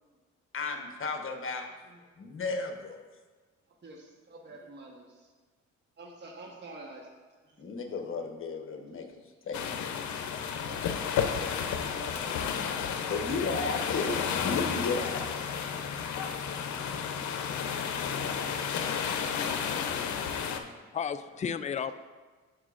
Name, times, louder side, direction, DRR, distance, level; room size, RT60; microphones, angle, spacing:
voice 1, 0.5-1.7 2.2-3.1 7.6-9.9 13.1-14.2 14.4-15.3, left 3 dB, 45° left, 4 dB, 1.1 m, -34 dB
voice 2, 3.8-5.3 6.0-7.1 7.4-7.9 10.6-13.2 14.0-14.7 18.4-18.8 19.5-20.8, right 2 dB, 35° right, -1 dB, 1.2 m, -49 dB
sound 1, 9.5-20.6, left 7 dB, 70° left, 0.7 m, -32 dB
voice 3, 20.9-21.9, left 7 dB, 25° left, 12 dB, 0.3 m, -35 dB
13.5 x 4.9 x 2.5 m, 1.4 s
cardioid pair, 90°, 30 cm